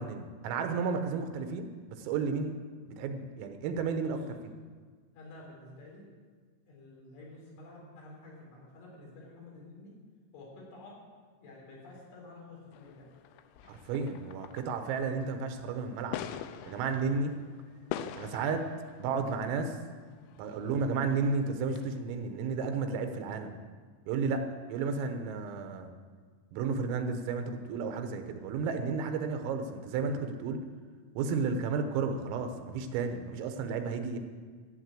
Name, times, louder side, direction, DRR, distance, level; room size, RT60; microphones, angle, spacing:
voice 1, 0.0-1.7 2.0-2.6 3.0-4.2 13.7-16.2 16.7-17.3 18.2-18.7 19.0-19.8 20.4-23.5 24.1-24.4 24.7-25.9 26.5-30.6 31.2-34.2, right 5 dB, 85° right, 6 dB, 3.7 m, -32 dB
voice 2, 5.1-6.1 6.7-10.0 10.3-11.0 11.4-13.1, left 2 dB, 65° left, -3 dB, 6.3 m, -50 dB
sound 1, 12.7-20.9 21.1-21.3 21.8-22.0, left 10 dB, 90° left, 2.5 m, -45 dB
14.5 x 8.8 x 7.6 m, 1.5 s
omnidirectional pair, 5.9 m